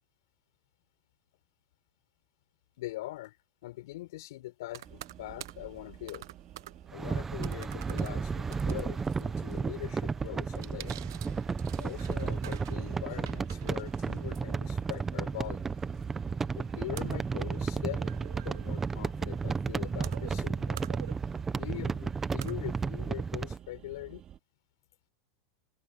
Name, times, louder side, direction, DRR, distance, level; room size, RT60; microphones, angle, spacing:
voice 1, 2.8-3.4 3.6-6.3 6.9-11.0 11.8-15.7 16.5-18.0 18.3-20.8 21.6-24.2, left 17 dB, 75° left, 5.2 m, -42 dB
sound 1, 4.7-23.1, right 13 dB, 85° right, 1.2 m, -50 dB
sound 2, 4.8-24.4, right 11 dB, 30° right, 5.7 m, -50 dB
sound 3, 6.9-23.6, right 5 dB, 15° right, 1.0 m, -33 dB
open air
supercardioid pair, 145°, 2 cm